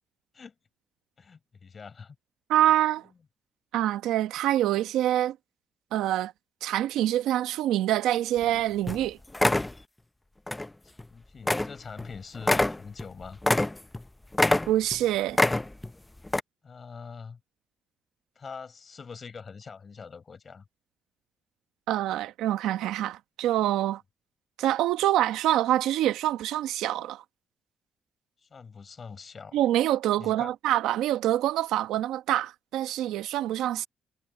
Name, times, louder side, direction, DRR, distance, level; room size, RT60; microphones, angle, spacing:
voice 1, 1.2-2.2 10.8-13.4 16.6-17.4 18.4-20.7 28.4-29.6 30.2-30.6, left 5 dB, 40° left, 5.4 m, -44 dB
voice 2, 2.5-3.1 3.7-5.4 5.9-6.3 6.6-9.2 14.7-15.4 21.9-24.0 24.6-27.2 29.5-33.9, right 13 dB, 90° right, 1.0 m, -25 dB
sound 1, 8.4-8.6 8.9-9.0 9.3-9.7 10.5-10.7 11.0-11.1 11.5-11.7 12.0-12.1 12.4-14.0 14.3-15.0 15.3-15.9 16.3-16.4, left 2 dB, 10° left, 0.6 m, -25 dB
cardioid pair, 90°, 0 cm